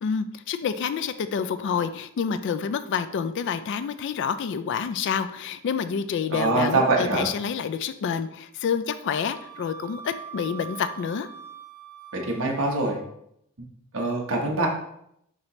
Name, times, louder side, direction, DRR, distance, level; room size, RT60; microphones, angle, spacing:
voice 1, 0.0-11.3, left 6 dB, 55° left, 11 dB, 0.3 m, -28 dB
voice 2, 6.3-7.3 12.1-13.0 13.9-14.7, right 2 dB, 65° right, 0 dB, 1.0 m, -24 dB
Wind instrument woodwind instrument, 9.1-13.1, right 7 dB, 80° left, 1.0 m, -43 dB
6.4 x 2.8 x 3.0 m, 0.75 s
head